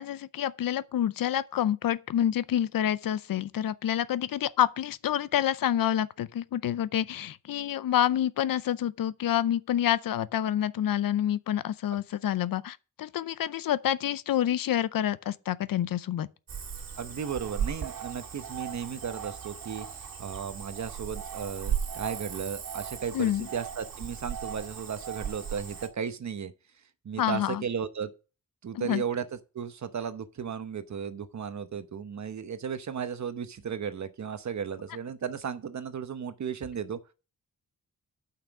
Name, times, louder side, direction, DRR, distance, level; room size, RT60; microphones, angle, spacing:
voice 1, 0.0-16.3 23.1-23.5 27.2-27.6 28.7-29.0, left 11 dB, 75° left, 0.6 m, -28 dB
Cricket / Frog, 16.5-25.9, right 8 dB, 80° right, 1.9 m, -37 dB
voice 2, 17.0-26.5 27.0-28.1 28.6-29.3 29.5-37.0, right 7 dB, 55° right, 0.9 m, -35 dB
8.8 x 5.9 x 5.9 m
wide cardioid pair, 95°, 34 cm